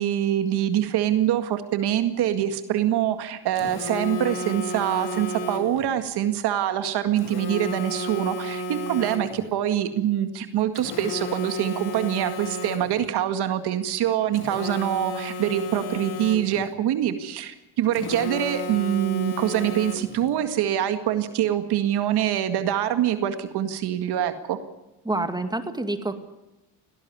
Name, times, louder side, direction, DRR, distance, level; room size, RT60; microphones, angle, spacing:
voice 1, 0.0-24.6, right 11 dB, 75° right, 9 dB, 2.1 m, -25 dB
Telephone, 3.6-5.9 7.2-9.5 10.8-13.1 14.3-16.7 17.9-20.3, left 1 dB, 65° left, 2.6 m, -33 dB
voice 2, 25.0-26.2, right 2 dB, 10° right, 8 dB, 2.2 m, -27 dB
18.0 x 18.0 x 9.7 m, 0.96 s
cardioid pair, 115°, 40 cm